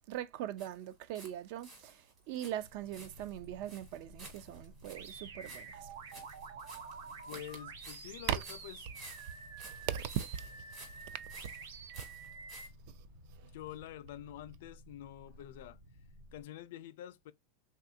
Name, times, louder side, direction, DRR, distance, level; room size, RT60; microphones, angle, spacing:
voice 1, 0.1-5.9 8.3-8.4 9.6-10.6 10.8-10.9 13.0-13.1 13.3-13.5, right 11 dB, 45° right, 0.3 m, -40 dB
sound 1, 0.6-1.3 1.6-12.7, right 2 dB, 30° right, 1.2 m, -54 dB
sound 2, 2.5-16.4, equal, 70° right, 1.2 m, -57 dB
sound 3, 4.9-12.7, right 5 dB, 90° right, 0.7 m, -49 dB
voice 2, 7.3-8.8 13.4-15.8 16.3-17.3, left 12 dB, 65° left, 0.3 m, -47 dB
3.4 x 2.3 x 2.6 m
supercardioid pair, 170°, 0 cm